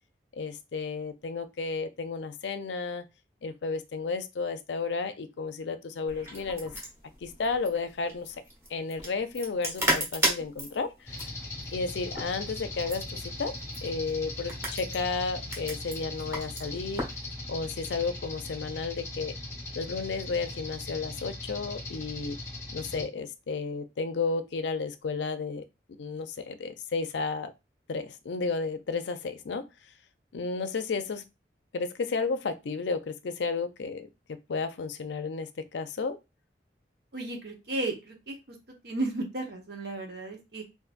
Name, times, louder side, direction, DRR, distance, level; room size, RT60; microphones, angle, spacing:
voice 1, 0.3-3.0 3.4-6.7 7.2-8.3 8.7-10.9 11.7-13.6 13.8-17.0 17.5-19.3 19.8-22.4 22.7-25.6 26.0-27.5 27.9-29.6 30.3-31.2 31.7-34.1 34.5-36.2, left 4 dB, 80° left, 0.4 m, -32 dB
sound 1, 6.1-17.2, equal, 15° right, 1.1 m, -35 dB
sound 2, 11.1-23.0, left 2 dB, 15° left, 0.9 m, -39 dB
voice 2, 37.1-38.6 38.8-40.6, right 2 dB, 60° right, 0.9 m, -34 dB
3.8 x 2.6 x 2.5 m
head